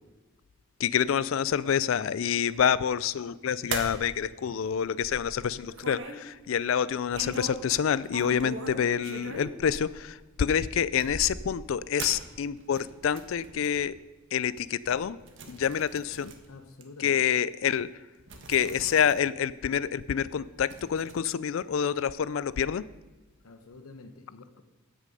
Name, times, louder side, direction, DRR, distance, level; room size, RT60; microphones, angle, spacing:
voice 1, 0.8-14.0 14.3-15.2 15.5-16.3 17.0-17.9 18.5-22.8, left 8 dB, 65° left, 18 dB, 0.4 m, -27 dB
sound 1, 3.7-4.0 4.6-6.2 7.1-7.7 8.0-10.3 10.9-11.6 12.0-13.9 14.4-14.5 14.9-16.5 16.8-16.9 17.8-17.9 18.2-19.2 19.5-19.6 20.7-21.1, right 3 dB, 60° right, 1.3 m, -40 dB
voice 2, 16.5-17.2 23.4-24.6, left 3 dB, 85° left, 8 dB, 0.9 m, -48 dB
14.0 x 6.3 x 5.4 m, 1.2 s
head